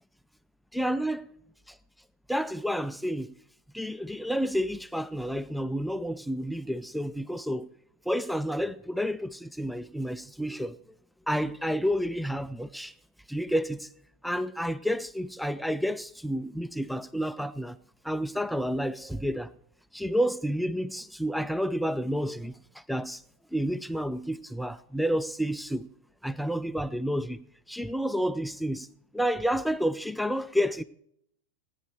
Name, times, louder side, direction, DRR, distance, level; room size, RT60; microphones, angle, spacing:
voice 1, 0.7-1.2 2.3-3.3 3.7-7.7 8.1-10.8 11.3-12.9 13.3-13.9 14.2-17.8 18.0-19.5 19.9-22.5 22.9-23.2 23.5-25.9 26.2-27.4 27.7-28.9 29.1-30.8, equal, ahead, 0.4 m, -30 dB
15.5 x 10.0 x 4.8 m
figure-of-eight pair, 90°, 0 cm